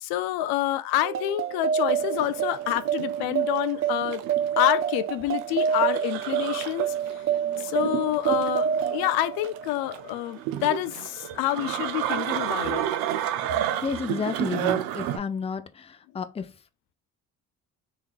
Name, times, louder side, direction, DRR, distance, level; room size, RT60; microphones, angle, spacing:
voice 1, 0.0-4.2 4.6-6.9 7.6-12.8, left 14 dB, 75° left, 0.5 m, -27 dB
sound 1, 1.0-10.0, right 8 dB, 40° right, 0.4 m, -27 dB
sound 2, 2.0-15.2, right 11 dB, 80° right, 0.6 m, -32 dB
voice 2, 13.8-16.5, left 5 dB, 15° left, 0.5 m, -31 dB
3.5 x 3.4 x 2.4 m
supercardioid pair, 70°, 36 cm